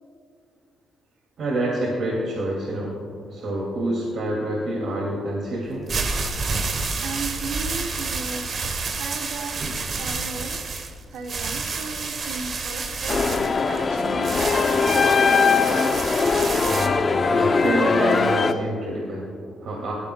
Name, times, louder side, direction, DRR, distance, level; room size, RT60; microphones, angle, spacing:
voice 1, 1.4-3.0 3.3-6.0 9.5-9.7 17.3-19.9, right 1 dB, 60° right, -2 dB, 2.4 m, -27 dB
sound 1, 5.7-16.9, right 4 dB, 45° right, 1.1 m, -29 dB
voice 2, 7.0-8.6 8.9-10.7 11.1-15.7, right 3 dB, 90° right, 5 dB, 1.0 m, -36 dB
sound 2, 13.1-18.5, left 4 dB, 35° left, 0.6 m, -20 dB
22.5 x 14.0 x 2.3 m, 2.3 s
cardioid pair, 125°, 0 cm